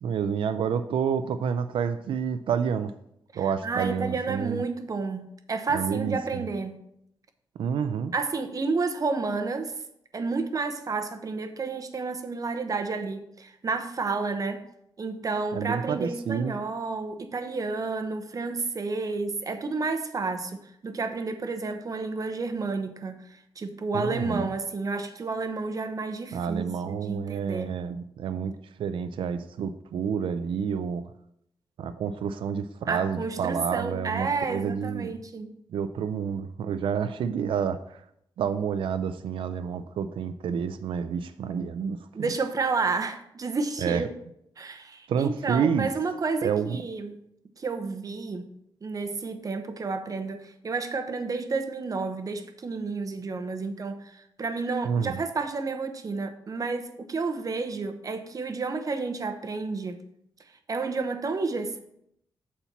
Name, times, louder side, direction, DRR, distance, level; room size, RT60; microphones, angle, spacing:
voice 1, 0.0-2.9 3.4-4.6 5.7-6.5 7.6-8.1 15.5-16.5 23.9-24.5 26.3-28.5 28.8-31.0 31.8-35.1 35.7-38.0 38.4-42.3 43.8-44.0 45.1-45.9 46.4-46.8 54.8-55.2, right 7 dB, 85° right, 0.4 m, -29 dB
voice 2, 3.6-6.8 8.1-9.8 10.1-14.6 15.0-23.2 23.6-27.8 32.9-35.6 42.1-44.1 44.6-47.2 47.6-48.5 48.8-60.0 60.7-61.8, right 4 dB, 45° right, 0.8 m, -31 dB
6.9 x 4.3 x 5.8 m
cardioid pair, 90°, 9 cm